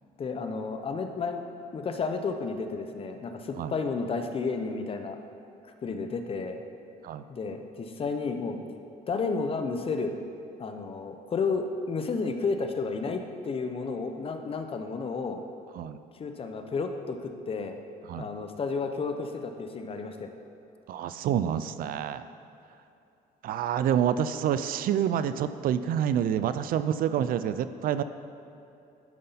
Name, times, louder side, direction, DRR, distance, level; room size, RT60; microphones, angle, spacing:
voice 1, 0.2-1.4 1.7-5.2 5.6-6.6 7.3-8.6 9.1-10.1 10.6-15.4 16.2-17.8 18.1-20.3, left 4 dB, 35° left, 6 dB, 0.7 m, -32 dB
voice 2, 20.9-22.2 23.4-28.0, right 9 dB, 60° right, 12 dB, 0.4 m, -27 dB
11.5 x 5.4 x 4.0 m, 2.7 s
cardioid pair, 110°, 17 cm